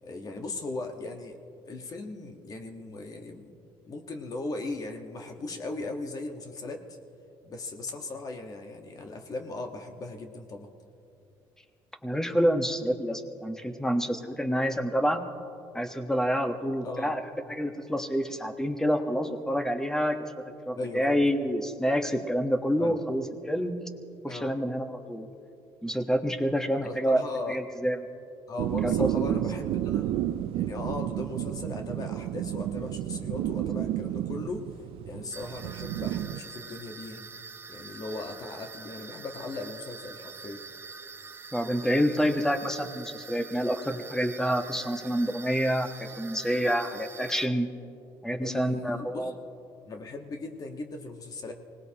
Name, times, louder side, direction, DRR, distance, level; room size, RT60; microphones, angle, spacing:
voice 1, 0.0-1.4 1.6-3.5 3.9-6.8 7.4-10.7 16.8-17.2 20.8-21.3 22.8-23.0 24.3-24.5 26.8-27.6 28.5-30.1 30.5-34.7 35.1-37.3 37.7-40.6 48.4-49.3 49.8-51.5, left 3 dB, 40° left, 4 dB, 1.4 m, -38 dB
voice 2, 12.0-15.2 15.7-17.2 17.5-20.2 20.6-23.8 24.2-25.3 25.8-27.2 27.5-28.0 28.8-29.4 41.5-47.7 48.2-49.3, equal, 5° left, 7 dB, 1.2 m, -28 dB
sound 1, 28.6-36.4, right 12 dB, 75° right, 0.5 m, -31 dB
sound 2, 35.3-47.5, right 4 dB, 25° right, 0.7 m, -45 dB
25.0 x 19.0 x 2.9 m, 2.7 s
cardioid pair, 100°, 10 cm